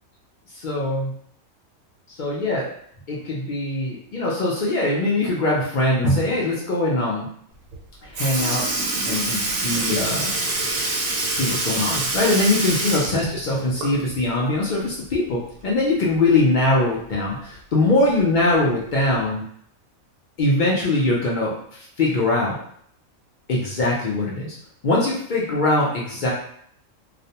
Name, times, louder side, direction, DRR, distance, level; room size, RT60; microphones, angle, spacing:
voice 1, 0.6-1.1 2.2-2.6 3.1-7.3 8.0-8.6 9.0-10.3 11.3-19.4 20.4-21.5 22.0-22.6 23.5-24.6 24.8-26.3, left 2 dB, 70° left, -4 dB, 0.4 m, -22 dB
Sink (filling or washing) / Liquid, 7.7-7.8 8.1-14.2 14.6-14.7 16.2-16.3 17.3-17.4 18.2-18.4 19.2-19.3, right 2 dB, 80° right, 1.0 m, -26 dB
2.4 x 2.1 x 2.7 m, 0.65 s
omnidirectional pair, 1.4 m